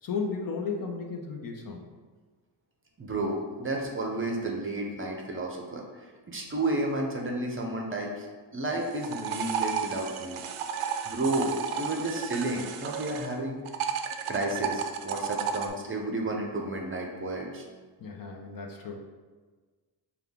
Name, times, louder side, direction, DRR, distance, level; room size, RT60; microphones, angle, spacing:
voice 1, 0.0-1.9 18.0-19.0, left 5 dB, 45° left, 1 dB, 0.7 m, -34 dB
voice 2, 3.0-8.3 8.5-10.4 11.0-13.6 14.3-17.6, right 2 dB, 25° right, 0 dB, 0.6 m, -32 dB
sound 1, 8.7-13.3 13.7-15.7, right 7 dB, 85° right, 0.6 m, -33 dB
5.3 x 2.3 x 3.6 m, 1.4 s
cardioid pair, 90°, 48 cm